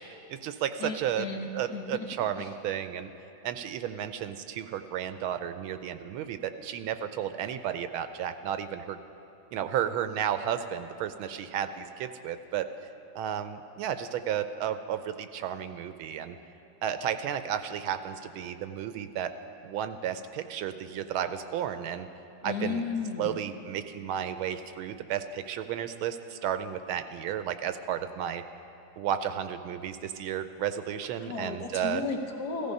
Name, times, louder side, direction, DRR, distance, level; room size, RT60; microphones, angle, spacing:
voice 1, 0.0-1.3 1.5-3.1 3.4-9.0 9.5-12.7 13.1-16.4 16.8-19.3 19.6-22.1 22.4-22.8 23.2-28.4 29.0-32.0, right 9 dB, 80° right, 10 dB, 1.4 m, -33 dB
voice 2, 0.8-2.1 2.4-2.5 22.4-23.4 31.2-32.7, left 4 dB, 55° left, 2 dB, 1.4 m, -34 dB
15.5 x 14.0 x 5.4 m, 2.9 s
omnidirectional pair, 2.4 m